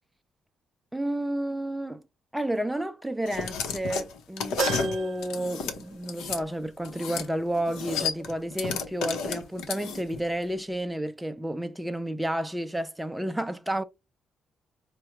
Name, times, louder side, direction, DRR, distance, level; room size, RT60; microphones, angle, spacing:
voice 1, 0.9-2.0 2.3-13.8, right 1 dB, 5° right, 0.4 m, -31 dB
sound 1, 3.3-6.4 6.8-7.3 7.5-10.2, left 6 dB, 85° left, 0.7 m, -32 dB
sound 2, 4.6-6.2 6.6-6.7 8.0-8.1, right 5 dB, 75° right, 0.5 m, -34 dB
4.6 x 2.1 x 2.9 m
cardioid pair, 90°, 0 cm